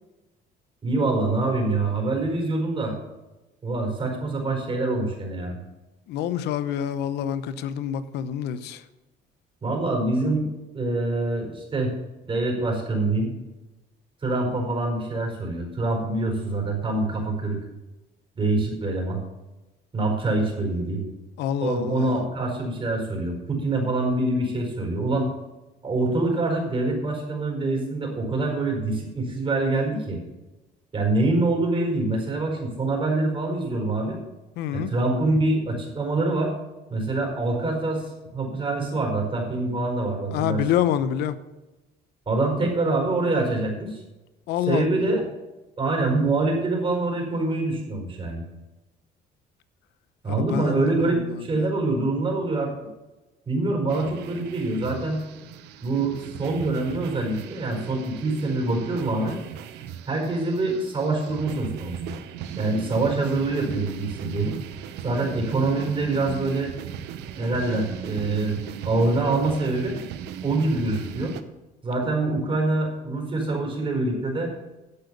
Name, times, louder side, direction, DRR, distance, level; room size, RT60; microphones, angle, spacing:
voice 1, 0.8-3.0 3.6-5.6 9.6-10.5 10.7-11.9 12.2-13.3 14.2-17.6 18.3-19.2 19.9-21.0 21.6-25.3 25.8-30.2 30.9-34.2 34.7-36.5 36.9-40.6 42.3-44.0 44.7-45.2 45.8-48.4 50.2-52.7 53.5-55.2 55.8-59.4 60.1-62.1 62.6-64.6 65.0-66.7 67.3-70.0 70.4-71.3 71.8-74.5, right 2 dB, 30° right, 4.7 m, -25 dB
voice 2, 6.1-8.8 21.4-22.2 34.6-34.9 40.3-41.3 44.5-44.9 50.3-51.7, left 10 dB, 85° left, 0.8 m, -27 dB
sound 1, 53.9-71.4, right 8 dB, 85° right, 0.9 m, -37 dB
11.0 x 8.0 x 6.8 m
cardioid pair, 110°, 17 cm